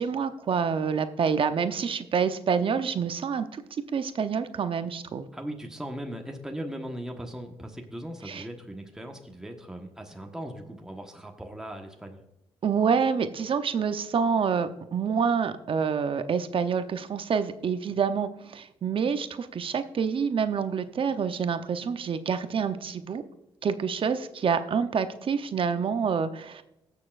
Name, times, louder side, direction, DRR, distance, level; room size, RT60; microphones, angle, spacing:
voice 1, 0.0-3.6 3.9-5.3 8.2-8.4 12.6-23.2 23.6-26.6, right 6 dB, 55° right, 10 dB, 0.8 m, -27 dB
voice 2, 5.3-12.2, right 1 dB, 5° right, 2 dB, 1.3 m, -38 dB
18.0 x 6.8 x 2.5 m, 0.88 s
supercardioid pair, 60°, 10 cm